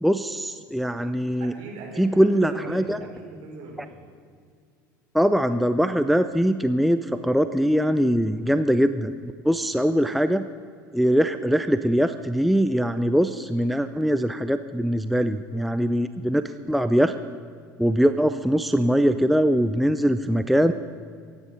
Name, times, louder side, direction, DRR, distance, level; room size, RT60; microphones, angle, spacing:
voice 1, 0.0-1.5 2.0-3.0 5.1-10.4 10.9-17.1 17.8-20.7, equal, ahead, 10 dB, 0.5 m, -22 dB
voice 2, 1.4-3.9, right 3 dB, 50° right, -1 dB, 5.2 m, -39 dB
23.5 x 9.8 x 5.4 m, 2.1 s
figure-of-eight pair, 75°, 11 cm